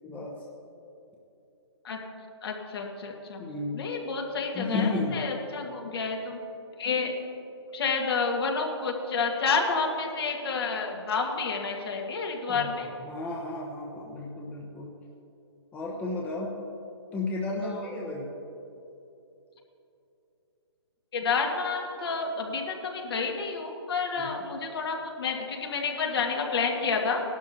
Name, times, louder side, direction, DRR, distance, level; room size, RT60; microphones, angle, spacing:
voice 1, 0.0-0.5 3.4-3.9 4.5-5.2 12.5-12.7 13.0-14.9 15.7-16.5 17.1-18.3, left 3 dB, 10° left, -3 dB, 1.0 m, -33 dB
voice 2, 2.4-3.4 3.7-6.4 6.8-7.1 7.7-12.9 17.6-17.9 21.1-27.2, left 4 dB, 60° left, 1 dB, 1.8 m, -29 dB
17.5 x 12.0 x 2.8 m, 2.9 s
hypercardioid pair, 150°, 15 cm